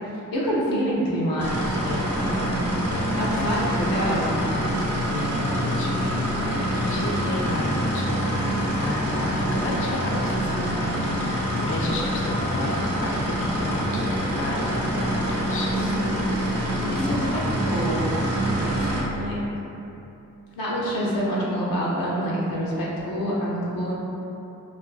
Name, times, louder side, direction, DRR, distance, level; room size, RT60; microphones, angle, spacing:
voice 1, 0.0-1.8 2.2-2.7 3.2-4.7 15.8-16.3 16.8-18.1 19.2-19.4 20.6-23.9, equal, 85° left, -6 dB, 0.6 m, -27 dB
sound 1, 1.4-19.0, equal, 45° right, 0.6 m, -26 dB
voice 2, 1.8-2.5 2.9-3.5 5.0-8.5 8.8-15.9 16.4-16.7 16.9-17.5 18.5-19.1, left 2 dB, 40° left, -2 dB, 0.4 m, -33 dB
2.4 x 2.4 x 2.3 m, 2.8 s
cardioid pair, 50°, 34 cm